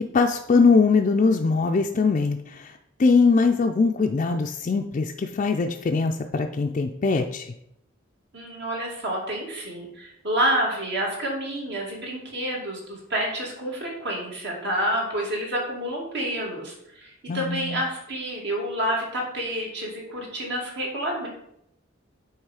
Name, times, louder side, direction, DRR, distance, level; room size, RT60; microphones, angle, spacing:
voice 1, 0.1-7.5 17.3-17.8, left 4 dB, 40° left, 3 dB, 0.4 m, -22 dB
voice 2, 8.3-21.3, right 1 dB, 60° right, -1 dB, 2.0 m, -29 dB
8.8 x 3.2 x 4.8 m, 0.78 s
head